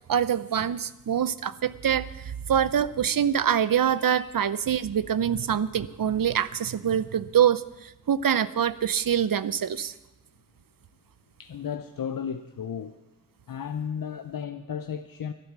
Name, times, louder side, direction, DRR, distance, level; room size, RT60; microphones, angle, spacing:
voice 1, 0.0-9.9, right 9 dB, 85° right, 0.6 m, -25 dB
voice 2, 11.4-13.0 13.5-15.3, left 7 dB, 80° left, 0.6 m, -34 dB
12.5 x 10.5 x 7.3 m
wide cardioid pair, 85°, 33 cm